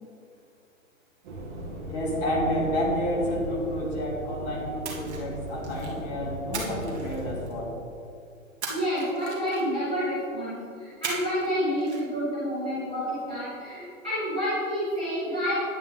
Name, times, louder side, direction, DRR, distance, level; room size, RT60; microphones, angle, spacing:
sound 1, 1.2-7.5, right 1 dB, 35° right, 2.5 m, -37 dB
voice 1, 1.9-7.8, left 1 dB, 30° left, -3 dB, 2.4 m, -30 dB
Splash splatter, 4.8-6.0 6.5-7.7 8.6-9.9 11.0-11.5 11.8-12.0, right 4 dB, 55° right, 2.4 m, -37 dB
voice 2, 8.7-15.5, equal, 5° right, -11 dB, 0.3 m, -29 dB
10.0 x 8.8 x 4.0 m, 2.4 s
hypercardioid pair, 145°, 40 cm